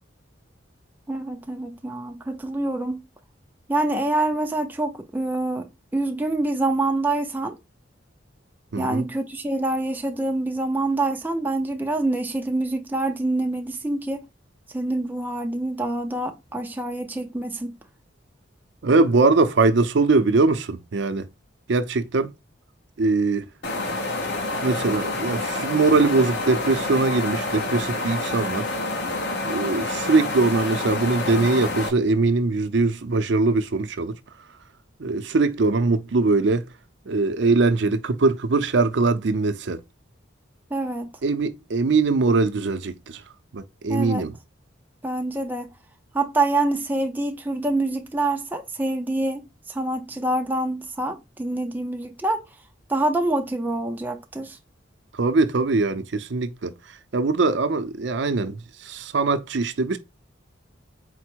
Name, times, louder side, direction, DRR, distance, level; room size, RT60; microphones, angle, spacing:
voice 1, 1.1-3.0 3.7-7.6 8.7-14.3 14.7-17.8 40.7-41.1 43.9-44.3 45.0-45.7 46.1-52.4 52.9-54.6, right 2 dB, 10° right, 0.4 m, -26 dB
voice 2, 8.7-9.1 18.8-21.3 21.7-22.3 23.0-23.5 24.6-28.6 29.5-34.1 35.0-36.6 37.1-39.8 41.2-43.2 43.5-44.3 55.1-56.7 57.1-60.0, right 3 dB, 65° right, 0.5 m, -21 dB
sound 1, 23.6-31.9, left 2 dB, 60° left, 0.9 m, -28 dB
4.3 x 2.0 x 4.4 m
head